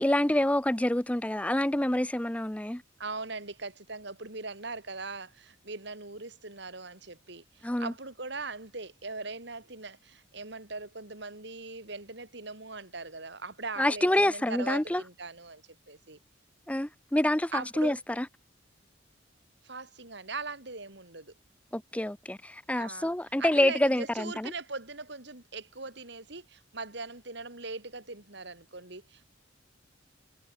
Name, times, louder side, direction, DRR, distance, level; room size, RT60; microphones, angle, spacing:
voice 1, 0.0-2.8 7.6-7.9 13.8-15.0 16.7-18.3 21.7-24.5, left 1 dB, 5° left, 0.5 m, -27 dB
voice 2, 3.0-16.2 17.5-18.0 19.6-21.3 22.7-23.1 23.4-29.3, right 3 dB, 55° right, 3.1 m, -40 dB
head